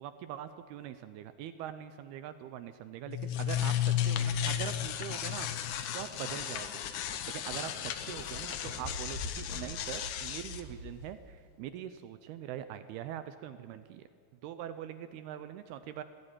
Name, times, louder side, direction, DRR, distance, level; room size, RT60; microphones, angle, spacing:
voice 1, 0.0-5.5 5.9-6.8 7.3-14.1 14.4-16.0, right 10 dB, 75° right, 10 dB, 2.5 m, -42 dB
sound 1, 3.1-10.6, left 10 dB, 85° left, 1.7 m, -34 dB
sound 2, 5.1-11.5, left 2 dB, 65° left, 4.2 m, -46 dB
Wind instrument woodwind instrument, 5.4-8.8, left 1 dB, 40° left, 5.4 m, -59 dB
22.0 x 15.5 x 9.0 m, 2.1 s
omnidirectional pair, 4.9 m